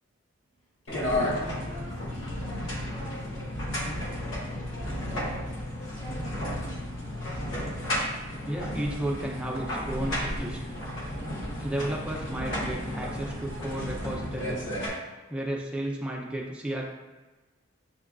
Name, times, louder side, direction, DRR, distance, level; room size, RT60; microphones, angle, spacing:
voice 1, 0.6-6.7, equal, 30° left, -6 dB, 1.0 m, -46 dB
sound 1, 0.9-14.9, left 1 dB, 70° left, 0.9 m, -33 dB
Male speech man speaking / Child speech kid speaking / Chatter, 8.2-13.9, equal, 45° left, 0.7 m, -50 dB
voice 2, 8.4-10.6 11.6-14.7 15.3-16.8, right 1 dB, 5° right, -2 dB, 0.4 m, -33 dB
sound 2, 8.6-14.1, right 1 dB, 70° right, 0.3 m, -43 dB
7.0 x 2.4 x 2.3 m, 1.2 s
head